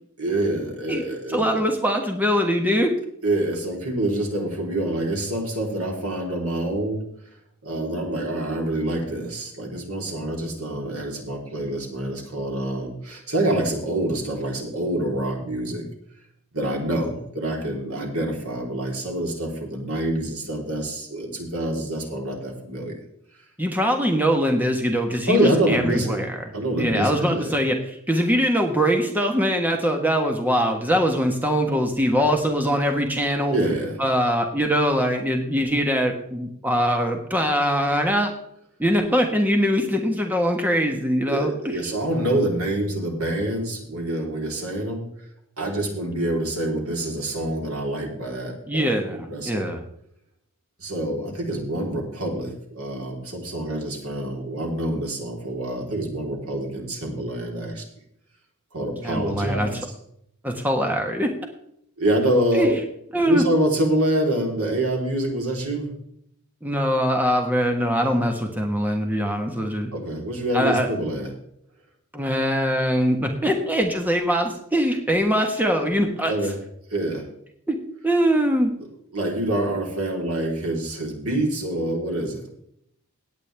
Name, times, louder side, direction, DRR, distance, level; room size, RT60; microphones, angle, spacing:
voice 1, 0.2-1.7 3.2-7.0 7.6-15.9 16.5-23.0 25.3-26.3 26.5-27.5 33.5-34.0 41.3-45.0 45.6-49.7 50.8-57.9 58.7-59.8 62.0-62.8 63.2-65.9 69.9-71.3 76.2-76.5 76.9-77.2 79.1-82.5, right 1 dB, 75° right, 1 dB, 3.5 m, -26 dB
voice 2, 1.3-2.9 23.6-26.4 26.8-27.8 28.1-33.5 34.0-38.3 38.8-41.5 48.7-49.8 59.0-59.7 60.4-61.3 62.5-62.7 63.1-63.4 66.6-69.9 70.5-70.9 72.1-76.3 77.7-77.8 78.0-78.7, equal, 10° right, 3 dB, 1.3 m, -22 dB
17.5 x 9.1 x 3.4 m, 0.71 s
head